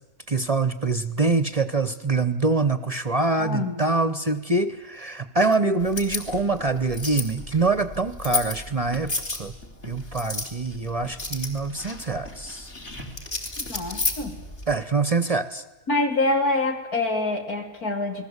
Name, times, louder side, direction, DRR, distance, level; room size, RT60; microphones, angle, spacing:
voice 1, 0.3-9.5 9.8-12.7 14.7-15.6, right 3 dB, 30° right, 12 dB, 0.9 m, -24 dB
voice 2, 3.4-3.9 13.6-14.4 15.9-18.3, left 2 dB, 85° left, 4 dB, 3.7 m, -26 dB
sound 1, 5.8-14.8, left 2 dB, 40° left, 3.6 m, -33 dB
29.0 x 20.5 x 8.2 m, 1.0 s
omnidirectional pair, 1.5 m